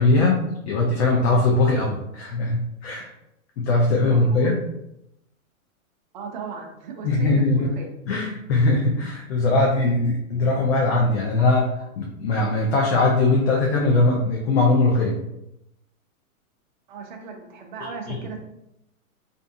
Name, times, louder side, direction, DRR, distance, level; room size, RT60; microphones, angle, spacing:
voice 1, 0.0-3.1 3.6-4.6 7.0-7.7 8.1-15.2 17.8-18.2, left 2 dB, 50° left, -2 dB, 0.5 m, -21 dB
voice 2, 4.1-4.5 6.1-7.9 10.3-10.4 16.9-18.4, right 5 dB, 35° right, 2 dB, 0.4 m, -37 dB
2.5 x 2.5 x 2.6 m, 0.83 s
hypercardioid pair, 155°, 42 cm